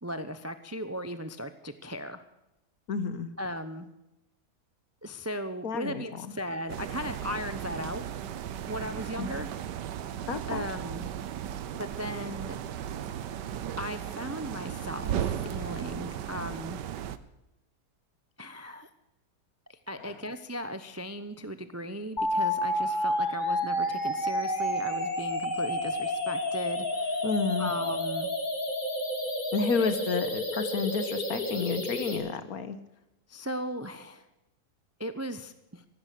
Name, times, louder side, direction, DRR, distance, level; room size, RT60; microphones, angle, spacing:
voice 1, 0.0-2.2 3.4-3.9 5.0-8.0 8.7-9.5 10.5-11.1 11.8-12.6 13.8-16.8 18.4-18.9 19.7-27.2 27.6-28.3 29.8-29.9 33.3-34.2 35.0-35.9, equal, 20° right, 11 dB, 0.4 m, -37 dB
voice 2, 2.9-3.3 5.6-6.0 9.2-9.3 10.3-10.6 20.0-20.1 27.2-27.7 29.5-32.8, left 5 dB, 60° left, 12 dB, 1.6 m, -30 dB
sound 1, 6.7-17.2, right 9 dB, 80° right, 1.4 m, -36 dB
sound 2, 22.2-32.2, left 1 dB, 25° left, 2.4 m, -30 dB
14.5 x 12.5 x 6.7 m, 0.93 s
omnidirectional pair, 1.8 m